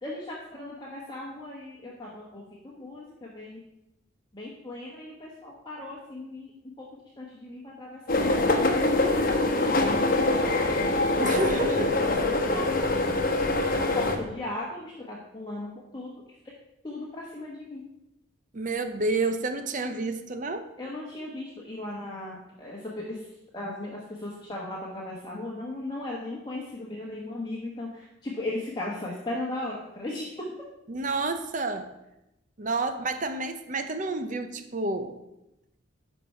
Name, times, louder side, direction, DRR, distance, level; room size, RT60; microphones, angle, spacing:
voice 1, 0.0-3.6 4.3-6.5 6.8-6.9 7.2-9.1 11.3-12.9 13.7-16.1 16.8-17.8 20.8-23.3 23.5-30.4, left 2 dB, 20° left, -4 dB, 1.2 m, -37 dB
sound 1, 8.1-14.2, left 2 dB, 45° left, 1.0 m, -24 dB
voice 2, 11.2-11.9 18.5-20.7 30.9-31.9 32.6-35.1, right 2 dB, 40° right, 8 dB, 0.7 m, -29 dB
11.0 x 4.6 x 5.6 m, 0.91 s
head